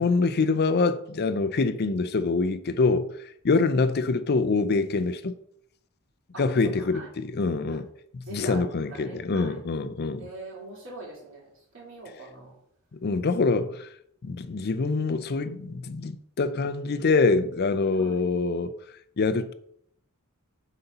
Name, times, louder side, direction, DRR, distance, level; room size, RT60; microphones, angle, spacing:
voice 1, 0.0-3.1 3.4-5.4 6.4-7.9 8.1-10.3 12.9-13.9 14.2-18.7 19.2-19.5, left 3 dB, 50° left, 0.5 m, -25 dB
voice 2, 8.2-8.6 8.9-9.6 10.2-12.5 18.0-18.3, right 2 dB, 65° right, 3.2 m, -43 dB
7.8 x 4.2 x 5.4 m
head